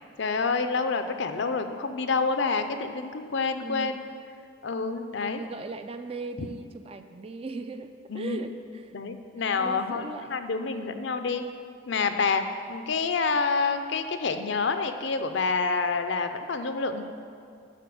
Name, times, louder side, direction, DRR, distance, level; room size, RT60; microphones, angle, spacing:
voice 1, 0.2-4.0 4.6-5.4 6.4-6.5 8.1-8.4 8.9-11.4 11.9-12.4 12.7-17.0, left 4 dB, 60° left, 8 dB, 0.5 m, -28 dB
voice 2, 3.6-4.0 5.2-9.0 9.6-11.1, right 3 dB, 30° right, 8 dB, 0.3 m, -39 dB
11.5 x 4.3 x 6.9 m, 2.4 s
head